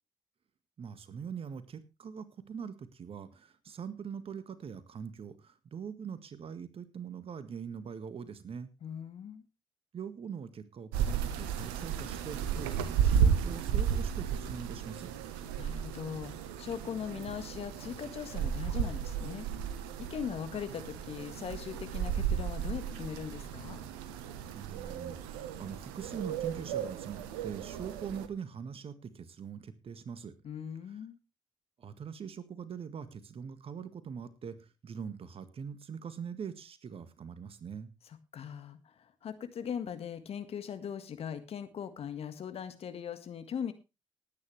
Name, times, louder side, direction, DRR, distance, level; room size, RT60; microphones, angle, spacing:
voice 1, 0.8-8.7 9.9-15.1 24.5-30.3 31.8-37.9, right 7 dB, 55° right, 12 dB, 1.8 m, -43 dB
voice 2, 8.8-9.4 15.6-19.5 20.0-23.8 30.4-31.2 38.3-43.7, left 8 dB, 60° left, 10 dB, 1.7 m, -40 dB
sound 1, 10.9-28.3, right 8 dB, 85° right, 1.1 m, -34 dB
18.5 x 9.7 x 3.3 m, 0.27 s
hypercardioid pair, 40°, 12 cm